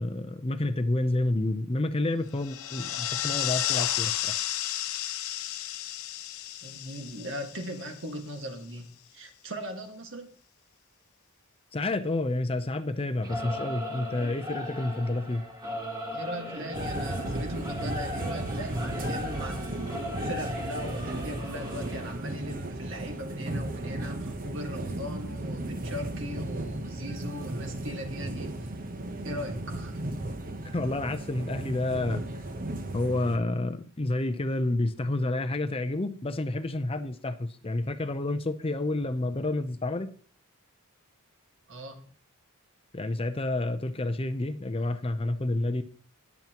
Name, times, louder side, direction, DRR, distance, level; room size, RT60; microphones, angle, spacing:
voice 1, 0.0-4.3 11.7-15.4 30.7-32.2 32.9-40.1 42.9-45.8, left 2 dB, 25° left, 9 dB, 0.6 m, -29 dB
sound 1, 2.4-8.2, left 12 dB, 70° left, 0.7 m, -32 dB
voice 2, 6.6-10.3 16.1-28.7 29.2-30.0 41.7-42.1, equal, 55° right, 5 dB, 1.7 m, -39 dB
Singing / Musical instrument, 13.2-22.1, left 1 dB, 20° right, 1.9 m, -37 dB
sound 2, 16.7-33.4, right 1 dB, 40° right, 1.0 m, -35 dB
20.0 x 7.2 x 3.0 m, 0.43 s
head